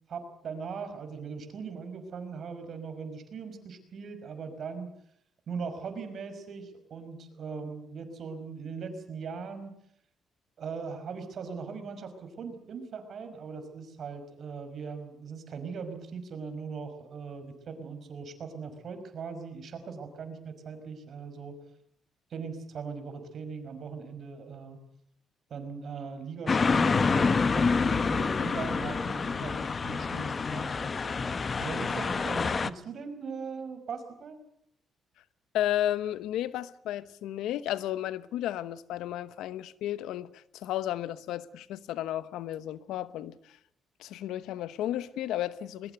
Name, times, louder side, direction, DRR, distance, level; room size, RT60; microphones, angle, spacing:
voice 1, 0.1-4.9 5.5-9.7 10.6-21.6 22.3-24.8 25.5-34.4, right 5 dB, 60° right, 5.4 m, -40 dB
sound 1, 26.5-32.7, left 4 dB, 35° left, 1.1 m, -27 dB
voice 2, 35.5-43.6 44.0-45.9, left 12 dB, 90° left, 1.0 m, -33 dB
22.0 x 21.0 x 8.0 m
cardioid pair, 90°, 0 cm